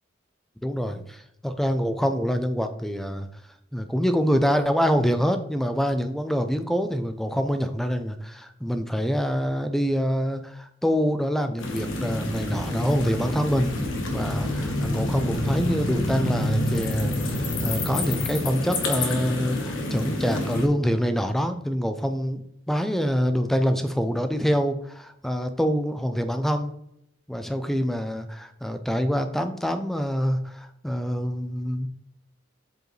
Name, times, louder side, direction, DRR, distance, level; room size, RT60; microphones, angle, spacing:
voice 1, 0.6-3.3 3.7-13.7 14.1-22.4 22.7-26.7 27.3-31.9, equal, ahead, 8 dB, 0.4 m, -25 dB
sound 1, 11.6-20.7, left 1 dB, 75° left, 1.2 m, -27 dB
7.7 x 4.7 x 3.1 m, 0.74 s
head